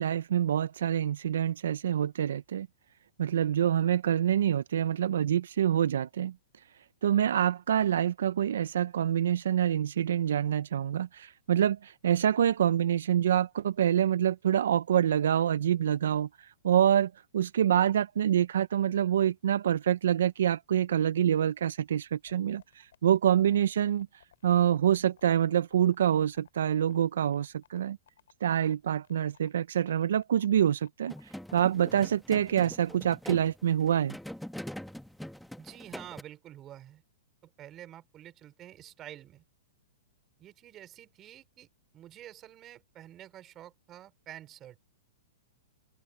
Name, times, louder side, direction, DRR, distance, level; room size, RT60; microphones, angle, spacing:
voice 1, 0.0-2.7 3.2-6.3 7.0-24.1 24.4-28.0 28.4-31.1 31.5-34.2, right 10 dB, 75° right, 0.6 m, -26 dB
sound 1, 22.3-31.7, left 10 dB, 70° left, 6.2 m, -60 dB
sound 2, 31.1-36.2, equal, ahead, 1.1 m, -43 dB
voice 2, 35.6-37.0 37.4-39.4 40.4-41.7 41.9-44.8, right 12 dB, 30° right, 4.8 m, -49 dB
hypercardioid pair, 125°, 0 cm